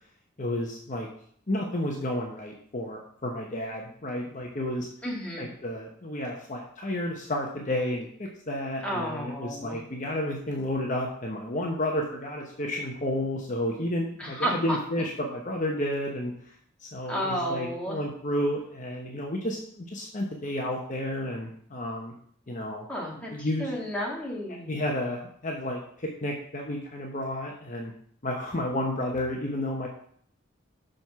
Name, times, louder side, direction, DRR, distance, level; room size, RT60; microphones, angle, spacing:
voice 1, 0.4-1.1 1.5-4.9 5.4-16.3 16.8-22.1 22.5-22.9 23.1-23.7 24.7-27.9 28.2-29.9, left 1 dB, 40° left, 0 dB, 0.9 m, -31 dB
voice 2, 5.0-5.5 8.8-9.8 14.2-14.8 17.1-18.0 22.9-24.8, equal, 5° left, -4 dB, 1.7 m, -32 dB
6.1 x 5.1 x 5.8 m, 0.63 s
head